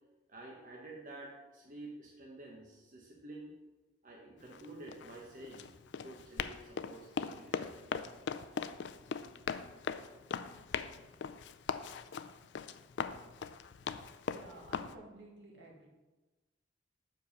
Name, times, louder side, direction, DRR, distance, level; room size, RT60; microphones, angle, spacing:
voice 1, 0.3-3.5 4.0-5.7 6.0-7.8, right 2 dB, 45° right, -2 dB, 1.0 m, -50 dB
Run, 4.4-14.9, left 6 dB, 70° left, 0.4 m, -40 dB
voice 2, 14.3-15.9, right 2 dB, 75° right, -1 dB, 1.8 m, -53 dB
6.9 x 4.8 x 5.3 m, 1.1 s
head